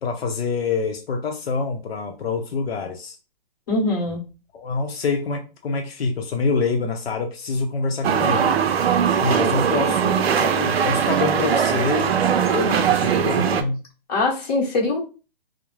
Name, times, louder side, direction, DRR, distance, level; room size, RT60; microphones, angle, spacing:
voice 1, 0.0-3.2 4.5-8.6 9.2-13.8, left 4 dB, 90° left, 0.6 m, -26 dB
voice 2, 3.7-4.2 9.9-10.0 14.1-15.0, left 2 dB, 40° left, 1.1 m, -22 dB
sound 1, 8.0-13.6, right 8 dB, 90° right, 0.5 m, -20 dB
2.3 x 2.1 x 3.0 m
hypercardioid pair, 165°, 30 cm